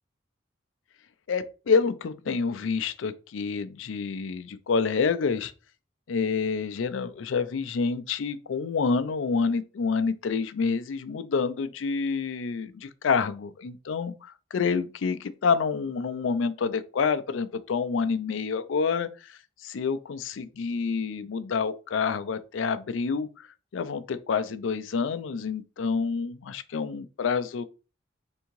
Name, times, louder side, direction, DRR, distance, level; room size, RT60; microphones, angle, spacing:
voice 1, 1.3-5.5 6.1-14.1 14.5-23.5 23.7-27.6, left 5 dB, 80° left, 0.4 m, -28 dB
3.6 x 3.4 x 3.0 m
head